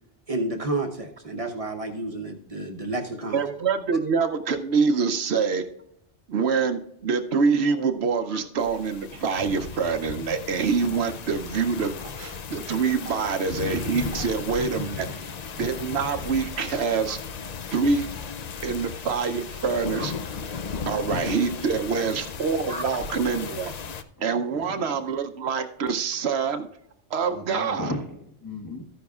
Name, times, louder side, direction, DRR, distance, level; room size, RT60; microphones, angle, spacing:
voice 1, 0.3-3.4 8.3-8.4 13.1-13.2 14.1-14.2 18.3-18.4 22.7-22.9, right 2 dB, 35° right, 3 dB, 0.9 m, -31 dB
voice 2, 3.3-5.6 6.3-15.1 15.6-17.2 17.7-18.1 18.6-20.1 20.8-23.7 24.2-26.7 27.1-27.9, right 5 dB, 70° right, 7 dB, 0.9 m, -25 dB
sound 1, 8.6-24.0, left 5 dB, 50° left, 0.5 m, -35 dB
voice 3, 15.0-15.3 20.5-20.9 24.2-25.1 27.3-28.8, left 1 dB, 20° left, 2 dB, 1.1 m, -37 dB
13.5 x 10.0 x 2.4 m, 0.78 s
omnidirectional pair, 1.1 m